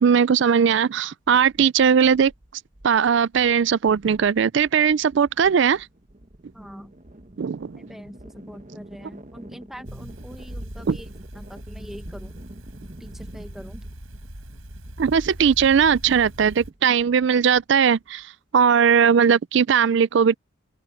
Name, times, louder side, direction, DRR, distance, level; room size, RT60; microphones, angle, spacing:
voice 1, 0.0-2.3 2.8-5.9 7.4-7.8 10.9-11.0 15.0-20.4, right 7 dB, 55° right, 0.4 m, -19 dB
sound 1, 1.2-18.2, right 1 dB, 35° right, 1.2 m, -49 dB
voice 2, 6.5-6.9 7.8-11.1 11.3-12.4 13.0-13.8, equal, ahead, 1.0 m, -42 dB
sound 2, 9.8-16.7, right 1 dB, 75° right, 4.6 m, -40 dB
open air
head